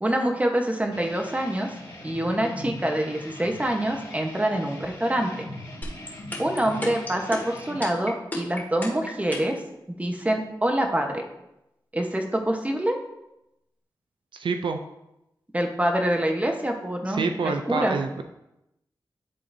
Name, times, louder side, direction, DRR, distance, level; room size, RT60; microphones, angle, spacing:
voice 1, 0.0-1.7 2.0-5.4 6.4-9.6 10.0-11.2 11.9-13.0 15.5-18.0, right 1 dB, 15° right, 3 dB, 1.0 m, -25 dB
sound 1, 0.9-7.8, left 1 dB, 85° left, 1.8 m, -41 dB
sound 2, 5.8-9.6, left 2 dB, 20° left, 1.9 m, -32 dB
voice 2, 14.3-14.8 17.1-18.1, right 4 dB, 80° right, 6 dB, 0.4 m, -27 dB
11.0 x 3.8 x 2.7 m, 0.87 s
cardioid pair, 65°, 8 cm